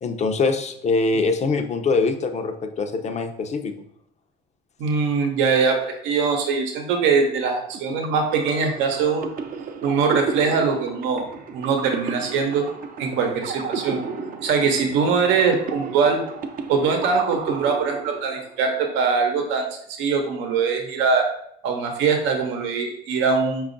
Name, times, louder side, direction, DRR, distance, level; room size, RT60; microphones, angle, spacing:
voice 1, 0.0-3.7, left 3 dB, 35° left, 7 dB, 0.6 m, -23 dB
voice 2, 4.8-9.3 9.8-11.3 11.5-12.7 13.0-14.0 14.4-16.2 16.7-19.7 20.0-21.3 21.6-23.7, right 5 dB, 80° right, 3 dB, 0.8 m, -22 dB
sound 1, 7.7-18.6, right 5 dB, 50° right, 0.6 m, -33 dB
5.0 x 2.4 x 3.9 m, 0.70 s
supercardioid pair, 90°, 19 cm